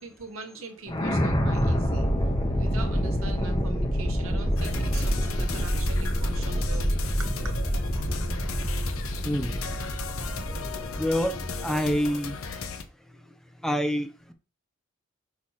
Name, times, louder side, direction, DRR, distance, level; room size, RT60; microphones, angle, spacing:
voice 1, 0.0-2.1 2.5-6.9 7.2-7.5, right 3 dB, 85° right, 1.5 m, -41 dB
sound 1, 0.9-12.0, equal, 20° left, 1.0 m, -27 dB
sound 2, 4.6-12.8, left 5 dB, 85° left, 0.9 m, -37 dB
voice 2, 9.2-9.6 10.5-12.4 13.1-13.3 13.6-14.3, equal, ahead, 0.6 m, -28 dB
6.2 x 3.1 x 5.7 m
head